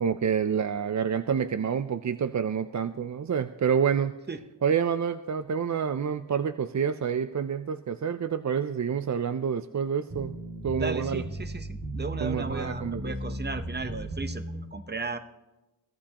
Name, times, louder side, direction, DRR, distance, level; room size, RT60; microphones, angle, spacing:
voice 1, 0.0-4.2 4.6-10.4 10.6-11.2 12.2-13.4, right 7 dB, 45° right, 11 dB, 0.5 m, -28 dB
sound 1, 10.1-14.6, right 1 dB, 85° right, 2.9 m, -35 dB
voice 2, 10.7-14.4 14.7-15.2, right 3 dB, 25° right, 10 dB, 0.8 m, -35 dB
23.0 x 14.5 x 2.9 m, 1.1 s
wide cardioid pair, 95°, 42 cm